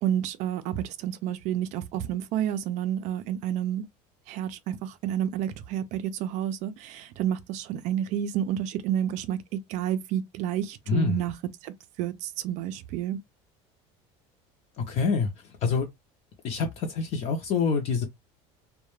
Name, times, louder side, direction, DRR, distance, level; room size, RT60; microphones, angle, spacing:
voice 1, 0.0-3.8 4.3-11.3 11.6-13.2, right 10 dB, 55° right, 0.4 m, -30 dB
voice 2, 10.9-11.2 14.9-15.3 15.6-15.9 16.4-18.1, left 5 dB, 45° left, 0.6 m, -26 dB
2.2 x 2.1 x 3.1 m
cardioid pair, 145°, 15 cm